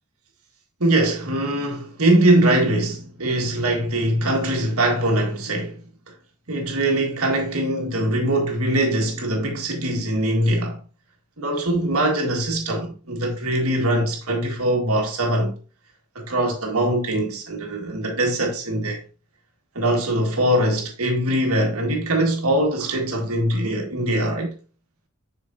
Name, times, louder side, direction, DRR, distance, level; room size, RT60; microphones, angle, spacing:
voice 1, 0.8-5.8 6.5-10.8 11.4-15.5 16.2-19.0 19.8-24.5, right 1 dB, 80° right, 1.9 m, -22 dB
7.3 x 5.7 x 2.7 m
head